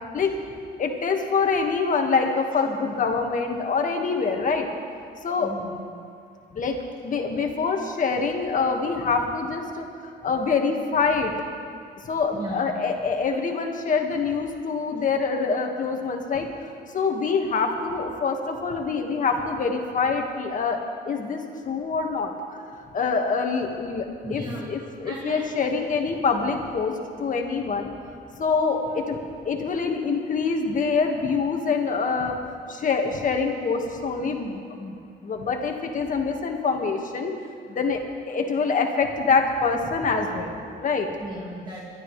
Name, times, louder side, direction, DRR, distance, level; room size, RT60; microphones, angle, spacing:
voice 1, 0.8-4.7 5.2-5.5 6.6-6.8 7.0-9.9 10.2-11.3 12.0-16.7 16.9-21.4 21.7-22.3 22.9-26.9 27.2-27.9 28.4-29.2 29.5-32.4 32.7-37.3 37.7-38.0 38.3-41.1, left 5 dB, 45° left, 3 dB, 1.8 m, -25 dB
voice 2, 5.4-5.8 12.3-12.7 24.2-24.7 25.0-25.5 27.8-27.9 28.9-29.0 41.2-41.8, right 1 dB, 25° right, -4 dB, 2.1 m, -35 dB
25.0 x 12.0 x 3.3 m, 2.3 s
cardioid pair, 95°, 18 cm